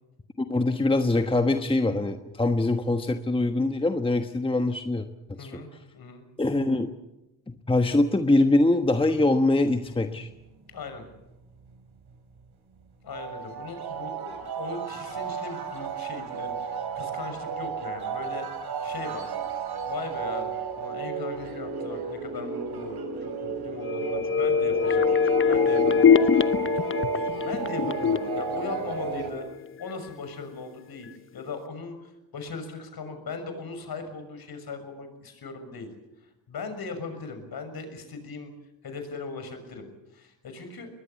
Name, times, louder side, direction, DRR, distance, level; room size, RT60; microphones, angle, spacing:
voice 1, 0.4-5.6 6.4-6.9 7.5-10.3, left 2 dB, 10° left, 7 dB, 1.3 m, -23 dB
voice 2, 5.4-6.2 10.7-11.0 13.0-18.5 18.8-19.3 19.9-25.1 25.5-26.2 26.5-26.7 27.4-29.5 29.8-35.9 36.5-38.5 38.8-40.9, left 4 dB, 50° left, 8 dB, 6.5 m, -39 dB
sound 1, 9.7-10.8 11.1-12.4 12.8-12.9 13.1-29.3, right 6 dB, 55° right, 4.9 m, -33 dB
sound 2, 23.8-29.5 29.9-30.0, left 6 dB, 25° left, 0.9 m, -23 dB
22.0 x 21.0 x 8.3 m, 0.95 s
cardioid pair, 90°, 47 cm